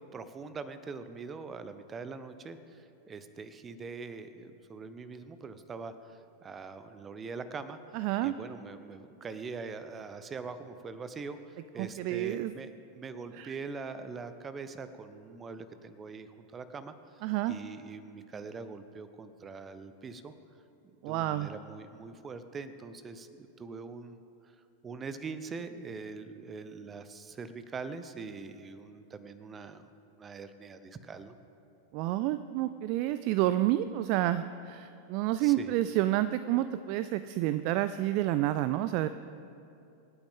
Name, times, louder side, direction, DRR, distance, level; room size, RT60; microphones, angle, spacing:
voice 1, 0.1-7.8 8.2-17.2 17.5-20.3 21.1-24.2 24.8-29.9 30.2-31.4 35.4-35.7, right 4 dB, 20° right, 12 dB, 0.8 m, -43 dB
voice 2, 7.9-8.3 11.8-12.5 13.3-13.5 17.2-17.6 21.0-21.5 31.9-39.1, right 14 dB, 45° right, 13 dB, 0.3 m, -29 dB
26.0 x 9.0 x 3.7 m, 2.7 s
figure-of-eight pair, 90°, 0 cm